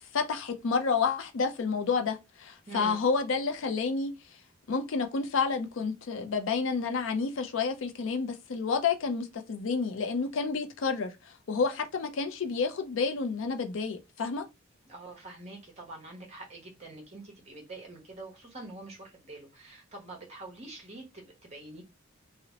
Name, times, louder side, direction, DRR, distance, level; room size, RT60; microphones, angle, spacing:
voice 1, 0.1-4.1 4.7-11.1 11.5-14.5, left 5 dB, 70° left, 0.4 m, -29 dB
voice 2, 2.7-3.0 14.8-21.8, right 2 dB, 35° right, 0.9 m, -45 dB
2.8 x 2.0 x 2.8 m
head